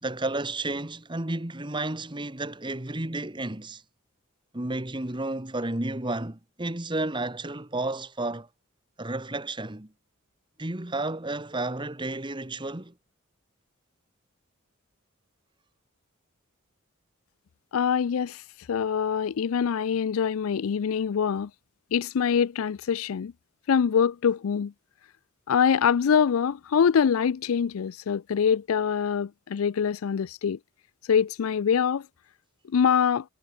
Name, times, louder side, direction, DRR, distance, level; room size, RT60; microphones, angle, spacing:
voice 1, 0.0-3.8 4.5-8.5 9.0-9.9 10.6-12.9, right 2 dB, 20° right, 1.4 m, -32 dB
voice 2, 17.7-18.4 18.7-21.5 21.9-23.3 23.7-24.7 25.5-30.6 31.1-32.0 32.7-33.2, left 7 dB, 75° left, 0.4 m, -24 dB
head